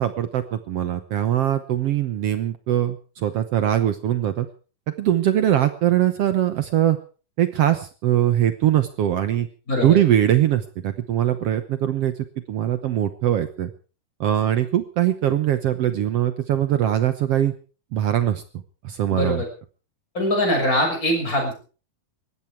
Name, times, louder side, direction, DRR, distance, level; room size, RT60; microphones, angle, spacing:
voice 1, 0.0-4.5 5.0-7.0 7.4-9.5 9.8-12.1 12.5-13.7 14.2-17.5 17.9-18.4 18.8-19.4, right 11 dB, 75° right, 11 dB, 1.4 m, -21 dB
voice 2, 9.7-10.0 19.1-19.5 20.1-21.5, left 1 dB, 25° left, 2 dB, 6.8 m, -22 dB
19.5 x 15.0 x 4.7 m, 0.38 s
omnidirectional pair, 4.0 m